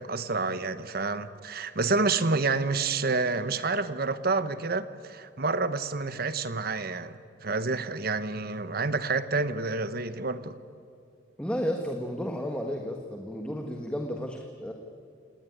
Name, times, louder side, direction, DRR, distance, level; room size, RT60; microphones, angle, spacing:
voice 1, 0.0-10.5, right 3 dB, 55° right, 12 dB, 1.2 m, -29 dB
voice 2, 11.4-14.7, equal, 5° left, 3 dB, 1.6 m, -32 dB
28.5 x 19.0 x 9.5 m, 2.5 s
head